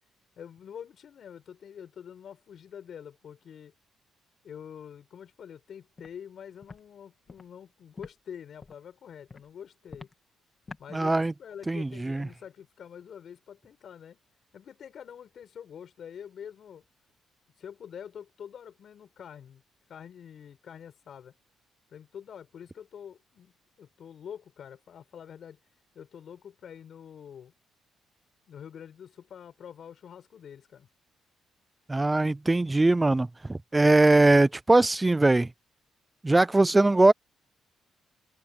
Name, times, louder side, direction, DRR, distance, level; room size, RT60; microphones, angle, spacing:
voice 1, 0.4-3.7 4.4-10.1 10.8-14.2 14.5-16.8 17.6-19.6 19.9-21.3 21.9-23.5 23.8-25.6 25.9-27.5 28.5-30.9, left 8 dB, 60° left, 7.2 m, -46 dB
Walk footsteps, 6.0-6.1 6.6-6.8 7.3-7.4 8.0-8.1 8.6-8.8 9.3-9.5 9.9-10.1 10.7-10.8, left 4 dB, 30° left, 2.8 m, -44 dB
voice 2, 10.9-11.3 11.7-12.3 31.9-35.5 36.2-37.1, right 2 dB, 15° right, 0.5 m, -21 dB
open air
cardioid pair, 90°, 0 cm